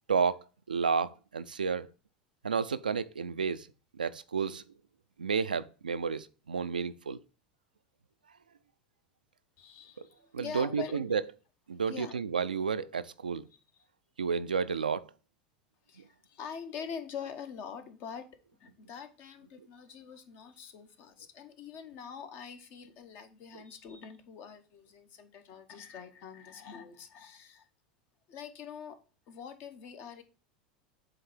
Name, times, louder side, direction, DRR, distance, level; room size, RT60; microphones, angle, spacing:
voice 1, 0.1-1.9 2.4-3.7 3.9-4.6 5.2-7.2 10.3-11.2 11.7-13.5 14.2-15.1 16.0-16.1, right 5 dB, 80° right, 0.4 m, -31 dB
voice 2, 9.6-11.0 11.9-12.2 15.9-18.3 18.6-27.7 28.3-29.0 29.3-30.2, left 7 dB, 50° left, 1.1 m, -44 dB
7.7 x 3.2 x 4.5 m
figure-of-eight pair, 80°, 5 cm